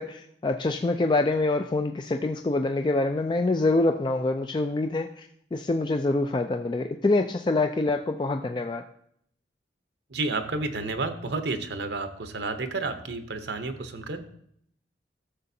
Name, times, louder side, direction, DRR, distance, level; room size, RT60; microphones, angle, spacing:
voice 1, 0.0-8.8, left 2 dB, 25° left, 6 dB, 0.3 m, -25 dB
voice 2, 10.1-14.2, right 3 dB, 75° right, 8 dB, 0.8 m, -31 dB
13.5 x 6.6 x 2.7 m, 0.67 s
head